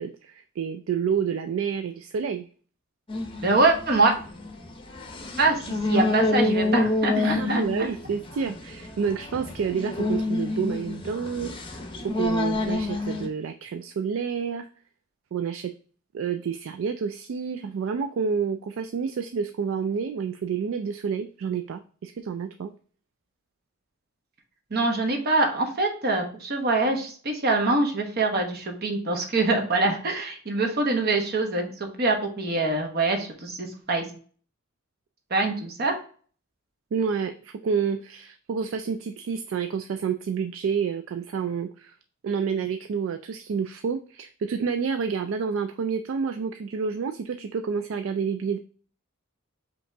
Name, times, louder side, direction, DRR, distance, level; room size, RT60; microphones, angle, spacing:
voice 1, 0.0-2.5 7.2-11.5 12.0-14.7 15.3-15.7 16.1-22.7 36.9-42.0 42.2-48.6, right 6 dB, 65° right, 7 dB, 0.3 m, -29 dB
sound 1, 3.1-13.3, left 2 dB, 25° left, 0.7 m, -28 dB
voice 2, 3.4-4.1 5.4-5.6 5.9-7.6 24.7-34.0 35.3-35.9, right 2 dB, 50° right, 3 dB, 1.0 m, -24 dB
5.2 x 2.9 x 3.4 m, 0.43 s
head